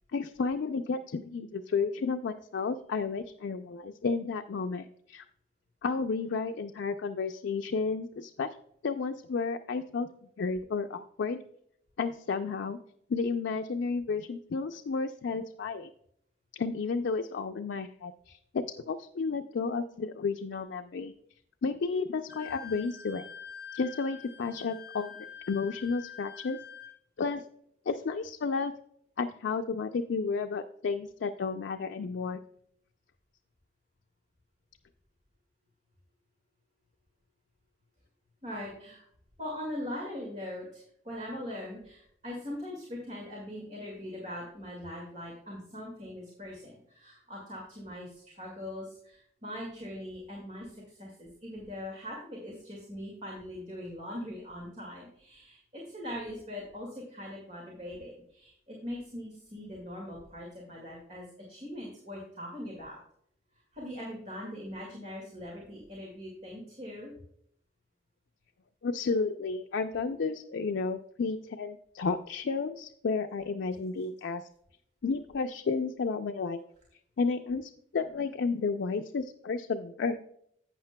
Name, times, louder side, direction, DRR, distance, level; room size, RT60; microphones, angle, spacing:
voice 1, 0.1-5.2 5.8-8.5 8.8-10.1 10.4-11.4 12.0-12.8 13.1-15.9 16.5-21.1 21.6-23.2 23.7-26.6 27.2-27.4 27.9-28.7 29.2-32.4 68.8-74.4 75.0-76.6 77.2-80.2, left 4 dB, 90° left, 6 dB, 0.4 m, -32 dB
Wind instrument woodwind instrument, 22.3-27.0, left 8 dB, 45° left, 2.9 m, -46 dB
voice 2, 38.4-39.0 39.4-63.0 63.7-67.1, left 1 dB, 40° right, -2 dB, 2.0 m, -41 dB
11.5 x 8.6 x 2.2 m, 0.69 s
head